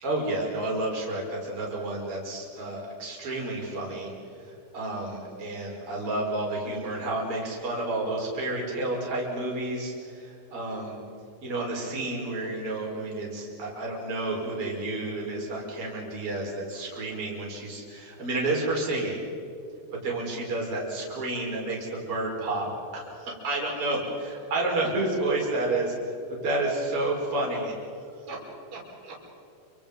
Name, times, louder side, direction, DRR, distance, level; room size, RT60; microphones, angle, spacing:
voice 1, 0.0-4.1 4.4-11.0 11.4-19.2 19.9-27.8 28.3-28.4 28.7-29.1, right 2 dB, 35° right, -2 dB, 6.1 m, -30 dB
29.0 x 26.0 x 5.4 m, 2.6 s
omnidirectional pair, 4.5 m